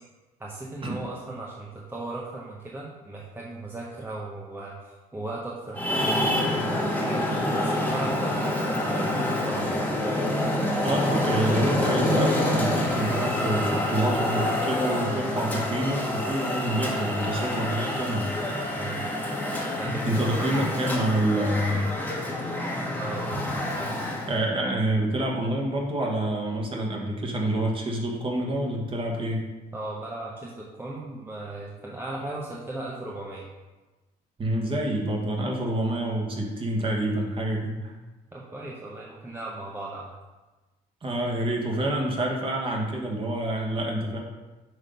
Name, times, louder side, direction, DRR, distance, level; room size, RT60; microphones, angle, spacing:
voice 1, 0.4-7.3 7.5-9.8 18.8-19.0 19.7-21.0 22.9-23.4 29.7-33.5 38.3-40.1, right 2 dB, 15° right, -4 dB, 0.9 m, -37 dB
Traffic noise roadway noise, 5.7-24.4, left 1 dB, 10° left, 1.4 m, -27 dB
voice 2, 10.8-18.3 20.0-21.8 24.3-29.4 34.4-37.9 41.0-44.2, right 1 dB, 30° right, -1 dB, 1.6 m, -27 dB
6.3 x 3.7 x 5.2 m, 1.2 s
cardioid pair, 110°, 17 cm